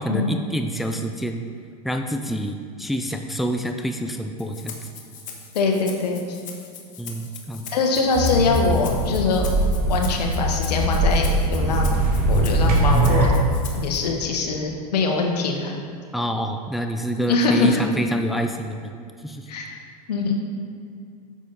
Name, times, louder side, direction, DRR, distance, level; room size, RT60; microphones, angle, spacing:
voice 1, 0.0-1.4 1.8-4.8 7.0-7.7 16.1-18.9 19.2-19.5, equal, ahead, 5 dB, 0.5 m, -27 dB
Rattle (instrument), 4.4-14.0, left 7 dB, 40° left, 1.4 m, -41 dB
voice 2, 5.5-6.4 7.7-9.5 9.9-12.0 12.3-13.3 13.8-15.7 17.3-17.8 19.5-19.8 20.1-20.4, left 4 dB, 80° left, 1 dB, 1.5 m, -23 dB
sound 1, 8.1-13.3, right 2 dB, 45° right, 2.3 m, -21 dB
9.1 x 7.2 x 4.2 m, 2.4 s
hypercardioid pair, 110°, 20 cm